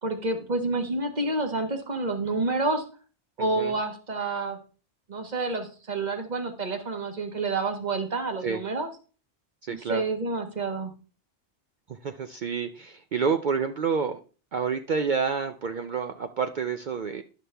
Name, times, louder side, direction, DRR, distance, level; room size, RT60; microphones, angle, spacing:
voice 1, 0.0-2.8 3.4-4.6 5.1-8.9 9.7-10.9, right 3 dB, 40° right, 6 dB, 1.3 m, -29 dB
voice 2, 3.4-3.7 8.4-8.6 9.6-10.0 11.9-14.2 14.5-17.2, right 6 dB, 55° right, 8 dB, 0.6 m, -29 dB
11.0 x 5.8 x 3.3 m, 0.37 s
omnidirectional pair, 1.2 m